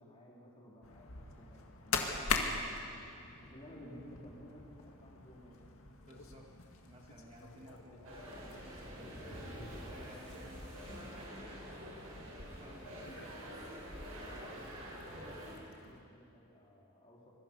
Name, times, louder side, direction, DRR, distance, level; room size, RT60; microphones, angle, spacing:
voice 1, 0.0-3.0 3.4-5.6 13.4-14.5 14.9-17.3, equal, 25° left, -4 dB, 4.4 m, -56 dB
sound 1, 0.8-16.0, left 4 dB, 75° left, 2.1 m, -43 dB
voice 2, 6.1-6.5 6.9-9.3 9.8-11.9 12.6-13.6, right 1 dB, 25° right, -1 dB, 2.2 m, -56 dB
sound 2, 7.4-7.8 8.4-11.3 12.4-12.6 13.4-13.5 14.0-15.5, equal, 5° left, 7.3 m, -54 dB
sound 3, 8.0-15.5, equal, 90° right, 7.0 m, -48 dB
25.0 x 22.5 x 5.6 m, 2.5 s
head